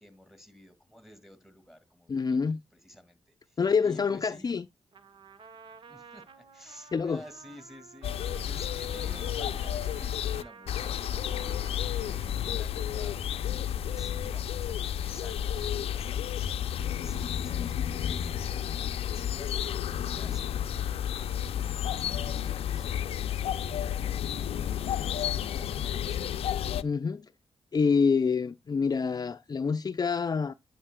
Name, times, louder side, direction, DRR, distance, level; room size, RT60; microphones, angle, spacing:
voice 1, 0.0-2.4 2.8-3.2 3.5-4.5 5.9-11.1 11.4-13.2 13.5-16.5 16.9-19.5 25.3-26.4, equal, ahead, 2.3 m, -52 dB
voice 2, 2.1-2.6 3.6-4.6 6.9-7.2 26.8-27.3 27.7-30.5, left 5 dB, 40° left, 0.5 m, -27 dB
Trumpet, 4.9-12.8, right 5 dB, 60° right, 1.1 m, -52 dB
sound 1, 8.0-26.8, left 10 dB, 90° left, 0.5 m, -31 dB
9.9 x 6.3 x 2.3 m
cardioid pair, 65°, 10 cm